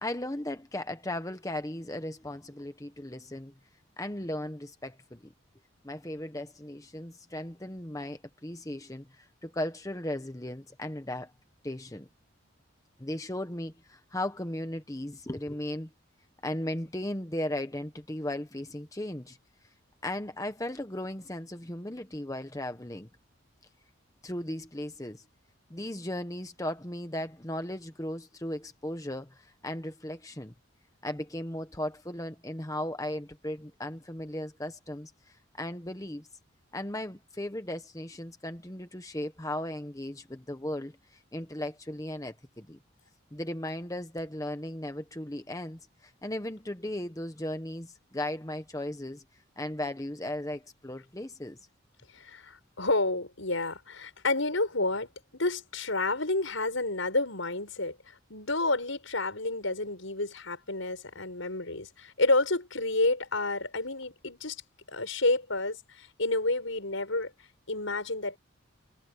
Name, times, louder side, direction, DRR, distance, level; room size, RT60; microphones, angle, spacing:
voice 1, 0.0-3.5 4.0-5.2 5.8-11.3 11.6-12.1 13.0-15.9 16.4-19.4 20.0-23.1 24.2-25.2 25.7-30.5 31.0-36.3 36.7-42.8 43.3-49.2 49.6-51.6, left 1 dB, 15° left, 1.0 m, -36 dB
voice 2, 52.1-64.6 64.9-67.3 67.7-68.4, left 2 dB, 75° left, 5.9 m, -30 dB
head